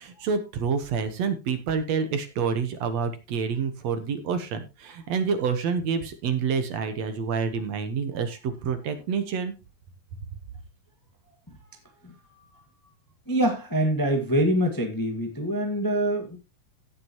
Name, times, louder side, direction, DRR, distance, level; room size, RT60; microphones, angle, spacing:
voice 1, 0.0-9.5, right 6 dB, 65° right, 9 dB, 2.2 m, -28 dB
voice 2, 13.3-16.4, right 1 dB, 15° left, 3 dB, 0.6 m, -25 dB
16.5 x 7.0 x 3.0 m, 0.27 s
omnidirectional pair, 3.7 m